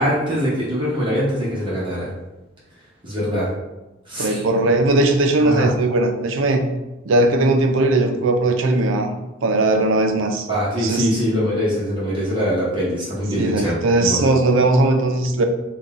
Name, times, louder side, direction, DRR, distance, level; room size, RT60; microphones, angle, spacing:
voice 1, 0.0-2.1 3.0-3.5 4.1-4.7 5.4-5.7 10.5-14.2, equal, 25° right, -8 dB, 1.0 m, -23 dB
voice 2, 4.2-6.6 7.1-9.1 9.4-10.5 10.8-11.1 13.4-15.4, right 2 dB, 75° right, 5 dB, 0.5 m, -18 dB
3.9 x 2.3 x 3.6 m, 1.0 s
head